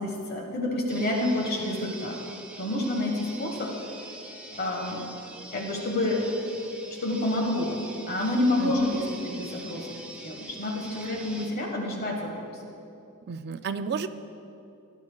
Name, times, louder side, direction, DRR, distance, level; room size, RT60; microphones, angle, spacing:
voice 1, 0.0-2.2 2.6-3.7 4.6-5.0 5.5-6.3 7.0-7.8 8.1-12.6, left 1 dB, 45° left, 0 dB, 1.4 m, -28 dB
sound 1, 0.9-11.5, right 2 dB, 5° right, 0.8 m, -44 dB
voice 2, 13.3-14.1, right 6 dB, 50° right, 10 dB, 0.4 m, -32 dB
17.5 x 10.5 x 2.3 m, 2.7 s
head